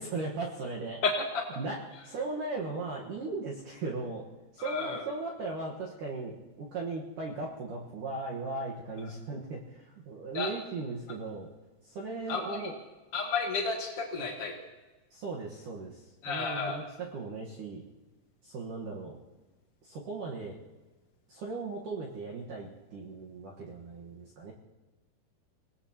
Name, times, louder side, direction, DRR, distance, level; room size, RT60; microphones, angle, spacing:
voice 1, 0.0-1.0 1.6-1.8 2.0-4.2 4.5-11.5 11.8-12.7 15.1-16.8 17.1-17.8 18.4-19.2 19.8-20.6 21.3-24.5, right 3 dB, 60° right, -2 dB, 2.3 m, -37 dB
voice 2, 1.0-1.4 4.6-5.0 9.0-9.1 10.3-10.5 12.3-12.6 13.1-14.5 16.2-16.8, left 4 dB, 80° left, 0 dB, 1.3 m, -32 dB
25.5 x 18.5 x 2.9 m, 1.2 s
omnidirectional pair, 5.3 m